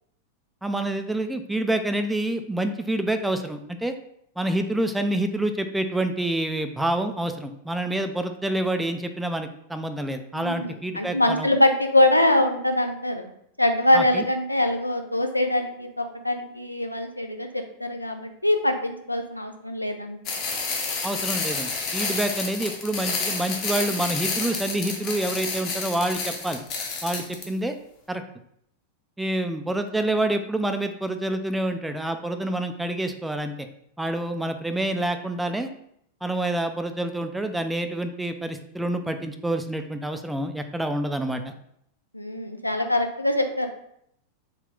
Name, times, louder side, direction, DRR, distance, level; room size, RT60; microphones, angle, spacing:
voice 1, 0.6-3.9 4.4-11.5 13.9-14.2 21.0-26.6 27.0-27.7 28.1-28.2 29.2-33.5 34.0-35.7 36.2-41.5, right 1 dB, 5° right, 7 dB, 0.3 m, -27 dB
voice 2, 10.3-13.3 13.6-20.2 42.1-43.7, left 1 dB, 85° left, 5 dB, 0.3 m, -23 dB
sound 1, 20.3-27.4, left 4 dB, 40° left, 0.8 m, -30 dB
3.7 x 2.2 x 3.6 m, 0.71 s
figure-of-eight pair, 90°, 0 cm